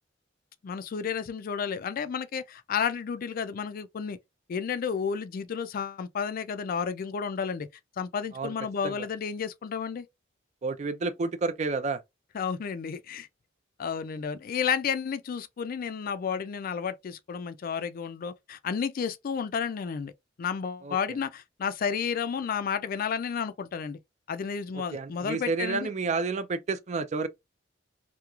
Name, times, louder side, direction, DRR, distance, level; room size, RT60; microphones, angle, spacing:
voice 1, 0.6-4.2 4.5-7.7 8.0-10.1 12.3-13.3 13.8-20.1 20.4-24.0 24.3-25.9, left 6 dB, 50° left, 0.3 m, -31 dB
voice 2, 10.6-12.0 20.8-21.0 24.7-27.3, right 4 dB, 40° right, 0.4 m, -30 dB
2.9 x 2.3 x 2.3 m
head